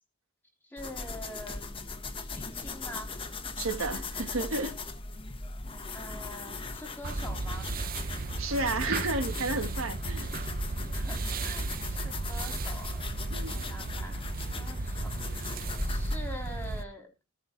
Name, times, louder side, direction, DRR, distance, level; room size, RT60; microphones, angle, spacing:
voice 1, 0.6-3.2 5.9-7.7 10.9-17.1, left 1 dB, 10° left, 3.4 m, -45 dB
sound 1, 0.8-16.2, left 3 dB, 25° left, 1.4 m, -38 dB
voice 2, 3.6-4.7 8.1-10.3 13.3-13.7, right 2 dB, 70° right, 1.5 m, -32 dB
sound 2, 7.0-16.8, right 3 dB, 45° right, 0.7 m, -35 dB
17.5 x 5.9 x 4.5 m
head